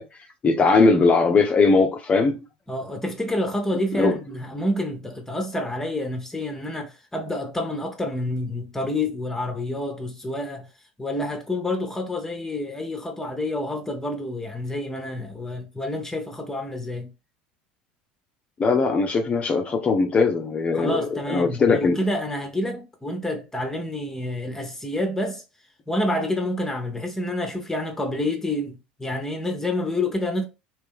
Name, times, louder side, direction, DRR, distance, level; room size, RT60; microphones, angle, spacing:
voice 1, 0.0-2.4 3.9-4.2 18.6-22.0, left 4 dB, 30° left, 0.6 m, -20 dB
voice 2, 2.7-10.7 11.0-17.1 20.7-25.4 25.9-30.4, left 1 dB, 10° left, 0.9 m, -28 dB
3.2 x 3.0 x 3.5 m
hypercardioid pair, 80°, 4 cm